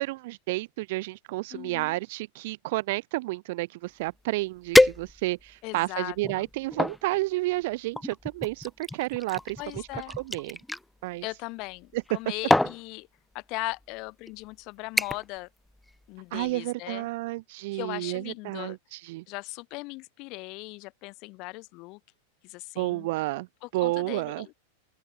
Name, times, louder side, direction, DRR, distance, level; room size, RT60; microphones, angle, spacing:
voice 1, 0.0-9.8 10.2-10.6 11.0-11.2 11.9-12.0 16.3-19.2 22.8-23.5 23.7-24.5, right 21 dB, 50° right, 0.5 m, -31 dB
voice 2, 1.5-2.0 5.6-6.5 9.6-10.1 11.2-13.1 13.3-15.5 16.1-17.1 17.7-18.8 19.3-22.0 22.4-23.1 23.6-24.5, left 25 dB, 40° left, 1.2 m, -38 dB
sound 1, 4.1-4.2 4.7-5.5 6.1-7.0 7.9-10.8 11.9-12.2 12.5-12.8 13.7-13.8 14.3-14.5 15.0-15.4 15.7-16.0 16.4-16.5, left 1 dB, 5° left, 1.4 m, -25 dB
open air
figure-of-eight pair, 90°, 0 cm